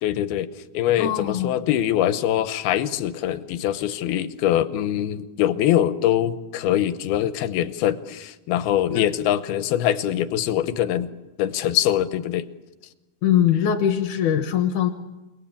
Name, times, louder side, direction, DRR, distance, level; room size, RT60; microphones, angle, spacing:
voice 1, 0.0-11.1 11.4-12.5, left 11 dB, 90° left, 12 dB, 2.9 m, -23 dB
voice 2, 1.0-1.6 8.9-9.0 13.2-14.9, left 9 dB, 65° left, 7 dB, 2.4 m, -21 dB
29.0 x 20.0 x 8.6 m, 1.1 s
omnidirectional pair, 4.3 m